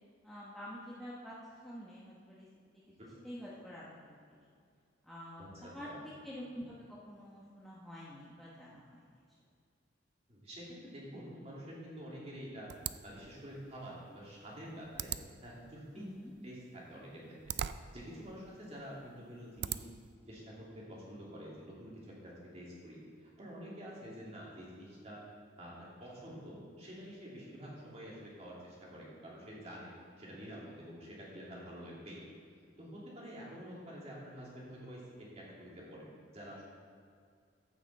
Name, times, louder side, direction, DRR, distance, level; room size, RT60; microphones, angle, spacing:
voice 1, 0.2-1.3 1.6-2.5 2.7-2.8 3.2-4.5 5.0-9.2 16.0-16.3, equal, ahead, -8 dB, 1.1 m, -48 dB
voice 2, 5.4-6.1 10.3-12.7 13.0-15.1 15.4-16.1 16.4-17.4 17.7-19.9 20.3-25.2 25.6-29.9 30.2-32.2 32.8-36.6, equal, 35° right, -6 dB, 2.7 m, -48 dB
sound 1, 12.7-20.1, right 10 dB, 60° right, 0.3 m, -44 dB
14.5 x 6.0 x 4.1 m, 2.2 s
head